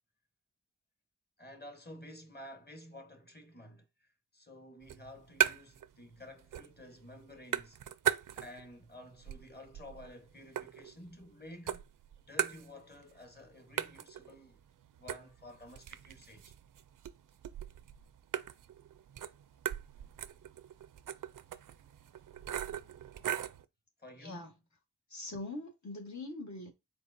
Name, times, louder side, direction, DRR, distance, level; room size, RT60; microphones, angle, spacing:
voice 1, 1.4-7.8 8.4-11.8 12.3-14.6 15.0-16.5 24.0-24.5, left 1 dB, 30° left, 1.2 m, -52 dB
sound 1, 4.8-5.9 6.2-6.9 7.1-8.7 9.1-11.3 11.7-13.1 13.4-13.5 13.8-23.6, right 10 dB, 90° right, 0.5 m, -38 dB
voice 2, 24.2-24.5 25.1-26.7, left 2 dB, 65° left, 1.3 m, -42 dB
4.6 x 4.1 x 2.6 m
wide cardioid pair, 75°, 31 cm